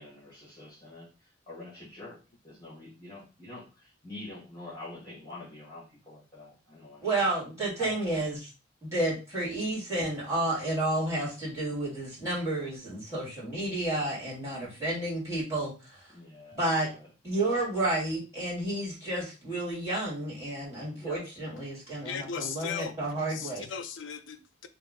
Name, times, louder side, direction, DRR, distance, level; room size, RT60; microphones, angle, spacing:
voice 1, 0.0-7.1 7.8-8.3 16.1-16.6 16.9-17.1 21.0-21.2, left 2 dB, 20° left, 1.5 m, -46 dB
voice 2, 7.0-8.4 8.8-16.0 16.6-16.9 17.2-23.7, right 1 dB, 15° right, 2.2 m, -31 dB
voice 3, 22.0-22.9 23.3-24.7, left 7 dB, 75° left, 0.5 m, -37 dB
3.6 x 2.4 x 3.6 m
head